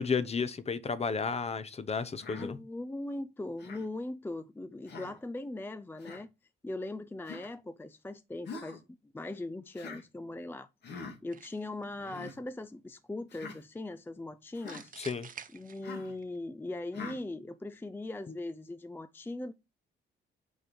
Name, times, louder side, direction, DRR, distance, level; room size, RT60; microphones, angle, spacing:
voice 1, 0.0-2.6 15.0-15.3 18.3-18.4, left 5 dB, 30° left, 0.8 m, -32 dB
Human voice, 2.2-2.5 3.6-3.9 4.9-5.2 6.0-6.2 7.2-7.5 8.4-8.8 9.7-10.0 10.8-11.2 12.0-12.3 13.3-13.6 14.5-14.8 15.8-16.1 16.9-17.2, left 4 dB, 60° left, 2.1 m, -44 dB
voice 2, 2.3-6.3 6.6-14.9 15.5-19.5, left 2 dB, 10° left, 0.4 m, -40 dB
sound 1, 11.3-11.8 14.7-16.2, right 7 dB, 45° right, 0.9 m, -49 dB
6.3 x 4.6 x 5.2 m
cardioid pair, 90°, 20 cm